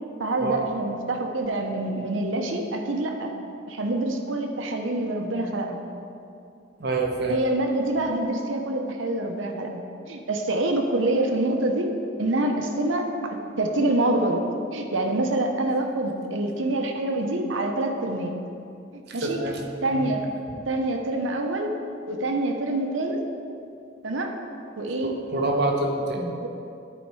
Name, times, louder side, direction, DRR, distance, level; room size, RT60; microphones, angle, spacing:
voice 1, 0.2-3.3 3.7-5.8 7.3-11.9 12.2-14.4 14.7-18.3 18.9-19.4 19.8-20.3 20.7-21.7 22.1-23.2 24.0-24.3 24.8-25.2 26.4-26.5, right 2 dB, 75° right, 3 dB, 0.8 m, -26 dB
voice 2, 6.8-7.4 19.1-19.6 19.9-20.1 25.0-26.3, right 2 dB, 55° right, 0 dB, 1.0 m, -26 dB
10.0 x 4.3 x 4.8 m, 2.6 s
head